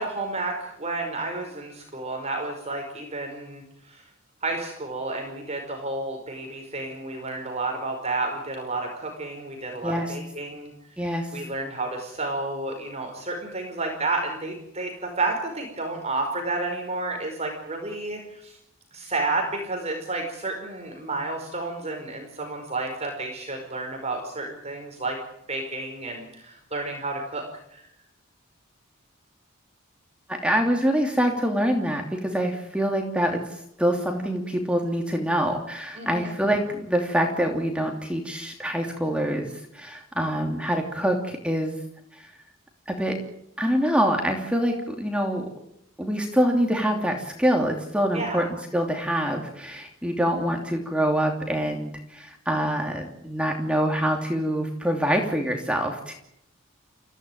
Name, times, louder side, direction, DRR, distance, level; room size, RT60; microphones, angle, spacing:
voice 1, 0.0-4.0 4.4-10.7 11.0-18.6 18.9-25.2 25.5-27.5 27.7-27.8 36.0-36.3 48.1-48.4, right 2 dB, 30° right, 2 dB, 5.1 m, -31 dB
voice 2, 9.8-10.1 11.0-11.3 30.3-41.7 42.1-42.3 42.9-43.2 43.6-45.4 46.0-48.5 48.7-56.1, equal, 5° right, 2 dB, 2.9 m, -25 dB
29.5 x 16.0 x 9.3 m, 0.77 s
head